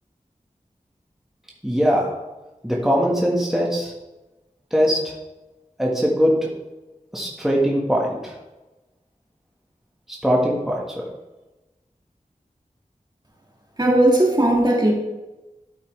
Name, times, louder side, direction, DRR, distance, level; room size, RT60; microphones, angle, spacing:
voice 1, 1.6-2.2 2.6-3.9 4.7-5.1 5.8-6.5 7.1-8.3 10.2-11.0, equal, 5° right, -4 dB, 1.5 m, -21 dB
voice 2, 13.8-14.9, right 1 dB, 30° right, -1 dB, 1.9 m, -17 dB
12.0 x 5.6 x 3.3 m, 1.1 s
wide cardioid pair, 65°, 14 cm